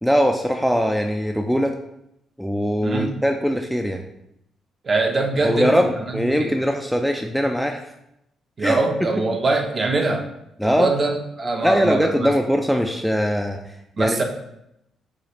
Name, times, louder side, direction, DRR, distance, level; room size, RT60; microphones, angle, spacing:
voice 1, 0.0-1.7 2.4-4.0 5.4-7.9 8.6-8.8 10.6-10.9 11.6-14.2, equal, ahead, 3 dB, 0.3 m, -21 dB
voice 2, 2.8-3.2 4.8-6.5 8.6-10.3 10.6-12.3 14.0-14.2, right 3 dB, 35° right, 4 dB, 0.7 m, -23 dB
4.9 x 2.4 x 4.0 m, 0.82 s
cardioid pair, 90°, 0 cm